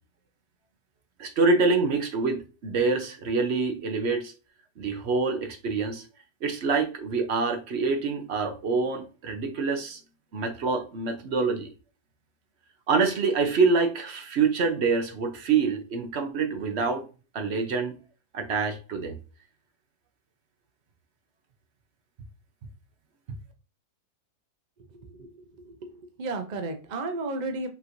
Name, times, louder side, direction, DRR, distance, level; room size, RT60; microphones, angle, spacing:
voice 1, 1.2-4.3 4.8-6.0 6.4-10.0 10.3-11.7 12.9-17.0 17.3-17.9 18.3-19.1 23.3-23.4, right 4 dB, 55° right, 0.8 m, -26 dB
voice 2, 24.9-27.7, right 3 dB, 75° right, 0.4 m, -34 dB
5.6 x 3.0 x 2.6 m
omnidirectional pair, 1.8 m